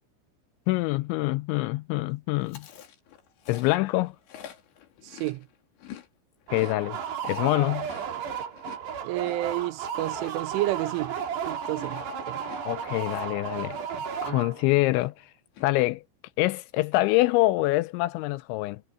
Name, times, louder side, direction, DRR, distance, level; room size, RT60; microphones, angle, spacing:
voice 1, 0.7-2.7 3.5-4.2 6.5-7.9 12.7-15.3 15.6-16.0 16.4-18.8, left 19 dB, 85° left, 2.7 m, -25 dB
Chewing mastication, 2.4-6.1 6.3-14.1 14.3-14.7 15.0-15.7, left 10 dB, 65° left, 4.5 m, -48 dB
voice 2, 5.0-5.5 9.0-11.2 11.5-12.4, right 17 dB, 90° right, 3.2 m, -30 dB
sound 1, 6.5-14.8, right 7 dB, 60° right, 5.1 m, -34 dB
omnidirectional pair, 5.6 m